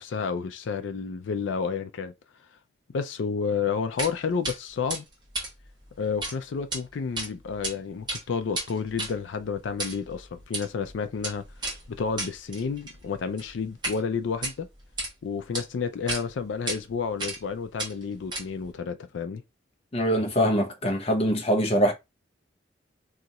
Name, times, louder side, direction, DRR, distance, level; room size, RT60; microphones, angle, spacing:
voice 1, 0.0-2.1 2.9-5.1 6.0-11.4 11.9-14.7 15.2-19.4, left 5 dB, 80° left, 0.4 m, -30 dB
sound 1, 4.0-4.1 4.4-4.6 4.9-6.3 6.6-6.8 7.2-7.7 8.0-14.0 14.3-15.1 15.5-15.6 16.1-16.2 16.7-16.8 17.2-17.5 17.8-18.7, right 2 dB, 25° right, 1.1 m, -34 dB
voice 2, 19.9-21.9, equal, 30° left, 0.6 m, -23 dB
2.8 x 2.4 x 4.0 m
head